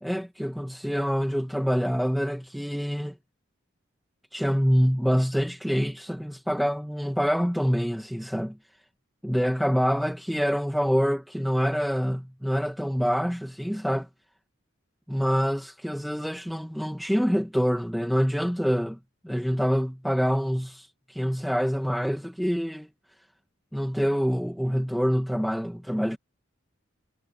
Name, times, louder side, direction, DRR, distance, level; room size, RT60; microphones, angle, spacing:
voice 1, 0.0-3.2 4.3-8.5 9.2-14.1 15.1-19.0 19.2-22.9 23.7-26.2, equal, ahead, 1.1 m, -26 dB
head